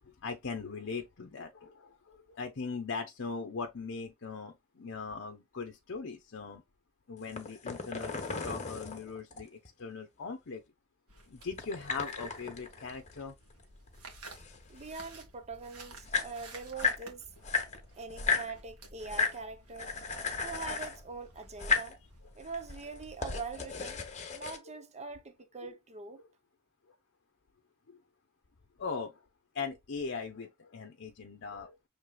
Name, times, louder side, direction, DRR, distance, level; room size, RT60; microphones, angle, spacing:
voice 1, 0.0-6.6 7.1-10.6 11.3-13.3 27.9-28.0 28.8-29.2 29.5-31.7, left 4 dB, 55° left, 0.7 m, -40 dB
sound 1, 7.2-9.7 11.5-13.6 13.9-15.1 15.7-15.8 15.9-17.0 17.4-18.5 19.0-19.4 19.8-21.0 21.5-22.0 22.5-24.6, left 5 dB, 35° left, 1.1 m, -34 dB
sound 2, 11.1-23.2, right 2 dB, 75° right, 1.6 m, -54 dB
voice 2, 14.7-17.3 18.0-19.9 20.4-22.0 22.4-24.0 24.3-26.2, right 4 dB, 30° right, 0.7 m, -43 dB
6.6 x 3.3 x 2.3 m
head